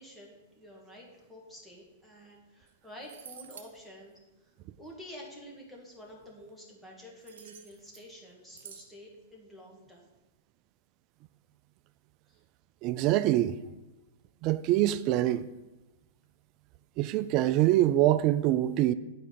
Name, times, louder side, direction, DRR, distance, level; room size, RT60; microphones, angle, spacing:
voice 1, 0.0-4.5 4.8-10.1 12.3-12.4, equal, 5° left, 1.6 m, -49 dB
sound 1, 2.7-2.8 3.0-3.7 7.2-8.1 8.5-8.9, right 8 dB, 75° right, 0.8 m, -49 dB
voice 2, 12.8-13.6 14.4-15.5 17.0-18.9, right 14 dB, 45° right, 0.3 m, -24 dB
8.7 x 4.6 x 3.9 m
hypercardioid pair, 125°, 0 cm